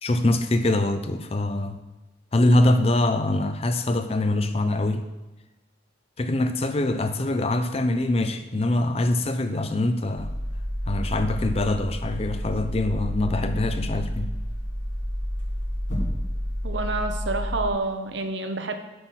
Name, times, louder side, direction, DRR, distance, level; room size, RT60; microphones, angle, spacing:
voice 1, 0.0-1.8 2.3-5.1 6.2-10.3 10.9-14.3, left 2 dB, 30° left, 9 dB, 0.5 m, -24 dB
sound 1, 10.2-17.7, equal, 90° left, 2.7 m, -30 dB
voice 2, 16.6-18.7, right 3 dB, 70° right, 6 dB, 0.9 m, -28 dB
7.8 x 5.8 x 6.3 m, 1.1 s
head